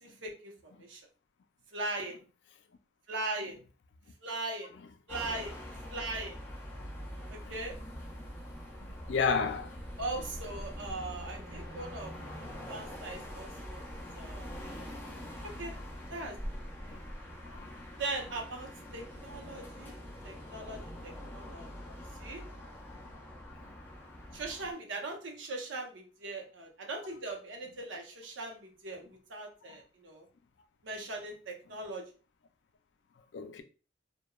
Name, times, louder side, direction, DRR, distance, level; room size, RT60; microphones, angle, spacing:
voice 1, 0.0-1.0 1.7-2.2 3.1-3.6 4.2-4.7 5.1-5.6 5.9-6.4 7.3-7.7 10.0-14.5 15.4-15.7 16.1-16.4 18.0-19.9 20.2-21.7 22.2-22.4 24.3-30.2 30.8-32.0, right 2 dB, 85° right, 0.7 m, -40 dB
sound 1, 5.1-24.7, equal, 10° left, 0.5 m, -44 dB
voice 2, 9.1-9.8 16.9-17.0 17.5-17.7 29.6-29.8 33.3-33.6, left 5 dB, 70° left, 0.4 m, -32 dB
sound 2, 9.6-12.8, equal, 45° right, 0.7 m, -52 dB
3.0 x 2.2 x 2.2 m
head